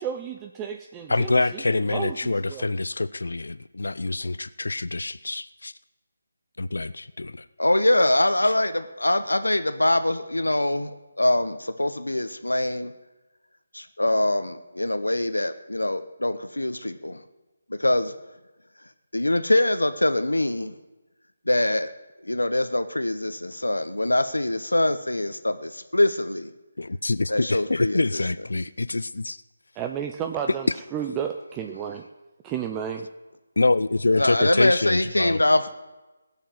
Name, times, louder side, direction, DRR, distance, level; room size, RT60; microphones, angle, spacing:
voice 1, 0.0-2.6 29.8-32.1 32.4-33.1 34.4-34.5, right 8 dB, 15° right, 5 dB, 0.6 m, -32 dB
voice 2, 1.1-5.7 6.6-7.5 8.4-8.5 26.8-29.4 30.5-30.6 33.6-35.4, left 2 dB, 75° left, 15 dB, 0.5 m, -25 dB
voice 3, 7.6-10.9 11.2-12.9 13.7-17.2 17.7-18.1 19.1-20.7 21.5-21.9 22.2-26.5 27.3-28.2 34.2-35.8, left 1 dB, 90° left, 10 dB, 1.0 m, -23 dB
16.5 x 7.1 x 9.3 m, 1.1 s
figure-of-eight pair, 155°, 0 cm